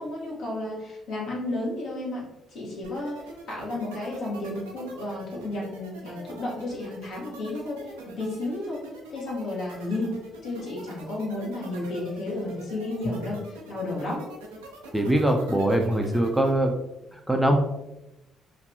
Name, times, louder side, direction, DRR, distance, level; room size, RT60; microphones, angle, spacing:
voice 1, 0.0-2.2 2.5-7.8 8.2-10.2 10.4-14.3, left 2 dB, 60° left, -4 dB, 1.0 m, -32 dB
sound 1, 2.8-16.6, right 3 dB, 80° right, 0.4 m, -45 dB
voice 2, 14.9-16.7 17.1-17.6, right 1 dB, 5° right, 2 dB, 0.4 m, -22 dB
2.6 x 2.2 x 2.6 m, 0.92 s
hypercardioid pair, 45°, 0 cm